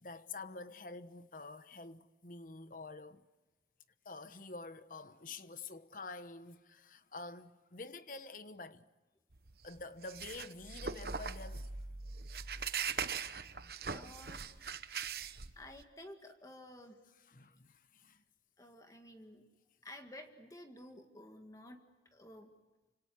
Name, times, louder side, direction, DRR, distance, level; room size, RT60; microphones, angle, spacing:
voice 1, 0.0-3.2 4.0-8.8 9.6-11.8 17.3-18.2, left 3 dB, 50° left, 1.1 m, -48 dB
sound 1, 9.3-15.8, right 6 dB, 60° right, 1.1 m, -41 dB
voice 2, 13.9-14.5 15.6-17.0 18.6-19.4 19.8-21.8 22.1-22.5, left 1 dB, 20° left, 1.9 m, -52 dB
29.0 x 26.5 x 7.7 m
head